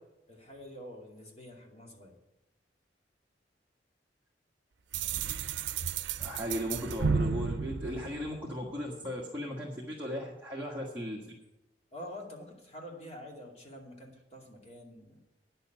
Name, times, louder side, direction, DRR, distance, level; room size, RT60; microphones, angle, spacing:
voice 1, 0.3-2.1 11.9-15.2, left 1 dB, 35° left, 0 dB, 2.5 m, -47 dB
sound 1, 4.9-8.8, right 5 dB, 90° right, 0.5 m, -33 dB
voice 2, 6.2-11.3, equal, 10° right, -5 dB, 1.6 m, -37 dB
10.0 x 7.0 x 9.0 m, 0.98 s
head